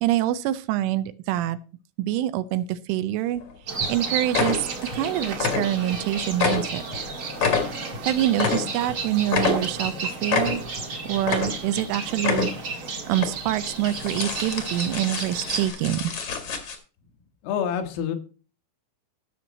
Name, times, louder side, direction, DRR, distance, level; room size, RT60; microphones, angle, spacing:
voice 1, 0.0-1.6 2.0-3.4 3.9-4.7 4.9-6.8 8.1-10.6 11.1-12.5 13.1-16.1, right 13 dB, 80° right, 13 dB, 3.1 m, -25 dB
sound 1, 3.4-3.5 3.8-4.0 4.3-5.0 5.3-6.0 6.3-8.9 9.3-9.9 10.3-10.8 11.2-11.8 12.1-12.7 13.1-13.3 13.8-16.8, left 6 dB, 55° left, 1.7 m, -27 dB
sound 2, 3.7-15.7, right 4 dB, 45° right, 1.7 m, -32 dB
voice 2, 17.4-18.2, left 8 dB, 85° left, 5 dB, 4.2 m, -27 dB
15.5 x 6.3 x 4.1 m, 0.35 s
omnidirectional pair, 5.8 m